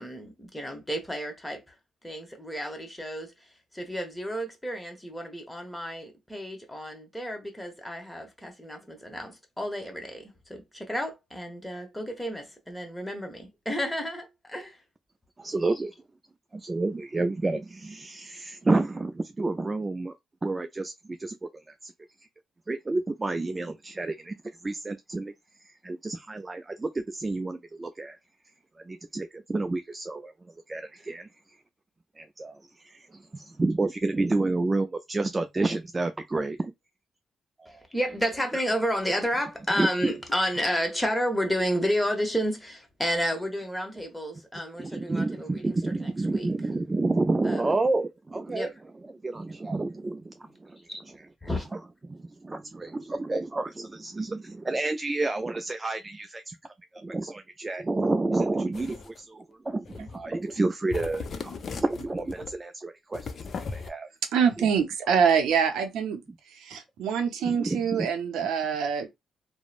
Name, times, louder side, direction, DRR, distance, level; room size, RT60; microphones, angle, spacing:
voice 1, 0.0-1.7 2.0-14.8 37.7-46.5 47.4-47.8 48.5-48.8 50.4-50.5 50.9-51.0 51.4-51.7, equal, 10° left, 1.0 m, -31 dB
voice 2, 15.4-15.9 16.5-20.1 20.4-20.9 21.2-21.9 22.7-24.3 24.6-25.3 25.8-28.2 28.9-30.3 30.7-31.3 32.2-32.6 32.8-33.1 33.3-36.7 37.6-37.7 39.8-39.9 44.8-48.7 49.2-50.3 50.6-50.8 52.1-56.6 56.9-63.3 63.7-64.1 64.6-64.7 67.4-68.1, right 2 dB, 25° right, 0.3 m, -29 dB
sound 1, 58.7-59.2 59.9-60.3 60.5-60.7 60.9-62.5 63.1-63.9, left 4 dB, 55° left, 0.4 m, -38 dB
voice 3, 64.3-66.2 66.6-69.1, right 7 dB, 80° right, 0.5 m, -25 dB
2.9 x 2.0 x 2.4 m
supercardioid pair, 60°, 0 cm